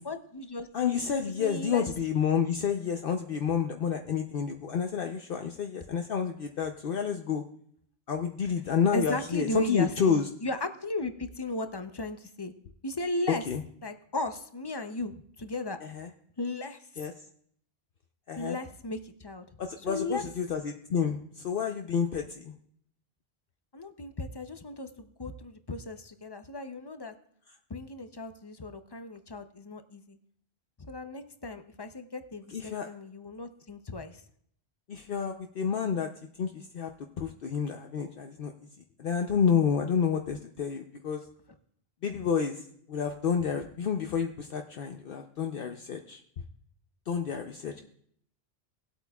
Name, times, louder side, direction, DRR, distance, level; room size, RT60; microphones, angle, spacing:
voice 1, 0.0-0.7 1.4-1.9 8.4-8.5 8.9-12.5 12.8-13.4 13.8-15.8 16.4-16.8 18.4-19.4 19.9-20.3 23.7-27.1 27.7-30.2 30.8-34.2, left 2 dB, 30° left, 8 dB, 0.5 m, -36 dB
voice 2, 0.7-7.4 8.1-10.2 13.5-13.6 15.9-16.1 17.0-17.1 18.3-18.6 19.6-22.5 32.5-32.9 34.9-36.1 36.4-36.9 37.2-38.5 39.0-41.2 42.0-42.6 42.9-46.2 47.1-47.8, left 7 dB, 60° left, 4 dB, 0.8 m, -29 dB
19.0 x 8.2 x 2.3 m, 0.65 s
omnidirectional pair, 1.1 m